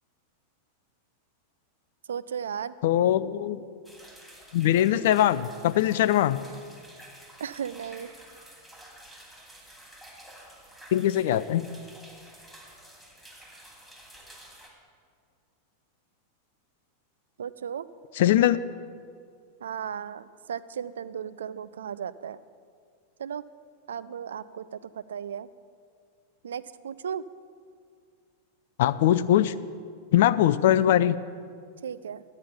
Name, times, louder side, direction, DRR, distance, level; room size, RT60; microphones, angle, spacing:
voice 1, 2.1-2.8 7.4-8.1 17.4-17.9 19.6-22.4 23.2-23.5 23.9-25.5 26.4-27.2 31.8-32.2, right 8 dB, 65° right, 15 dB, 0.4 m, -35 dB
voice 2, 2.8-3.6 4.5-6.4 10.9-11.7 18.2-18.6 28.8-29.5 30.1-31.2, left 12 dB, 55° left, 15 dB, 0.4 m, -21 dB
sound 1, 3.8-14.7, right 1 dB, 5° right, 2.4 m, -50 dB
12.0 x 8.8 x 5.7 m, 2.2 s
figure-of-eight pair, 90°, 0 cm